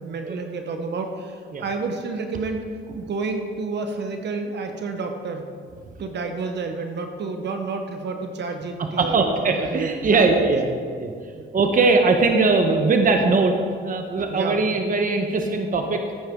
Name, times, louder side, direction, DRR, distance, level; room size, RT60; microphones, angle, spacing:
voice 1, 0.0-2.6 2.9-5.4 6.0-10.3 11.3-11.5 14.3-14.6, right 4 dB, 60° right, 5 dB, 1.2 m, -30 dB
voice 2, 9.0-10.7 11.0-11.1 11.5-13.5 13.8-16.0, right 3 dB, 45° right, 4 dB, 1.2 m, -20 dB
15.5 x 9.0 x 3.8 m, 2.1 s
cardioid pair, 90°, 20 cm